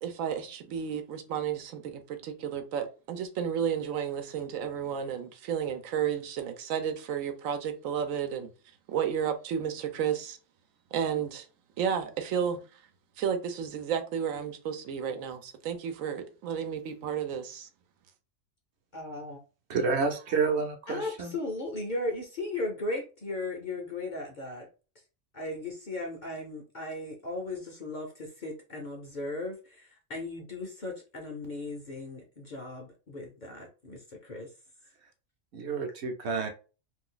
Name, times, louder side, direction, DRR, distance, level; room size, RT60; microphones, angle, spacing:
voice 1, 0.0-8.5 8.9-10.4 10.9-11.4 11.8-12.6 13.2-17.7, right 8 dB, 85° right, 1.0 m, -32 dB
voice 2, 18.9-19.4 20.9-24.7 25.3-34.5, left 2 dB, 50° left, 0.6 m, -37 dB
voice 3, 19.7-21.3 35.5-36.5, right 4 dB, 60° right, 0.9 m, -29 dB
2.6 x 2.3 x 3.7 m
omnidirectional pair, 1.3 m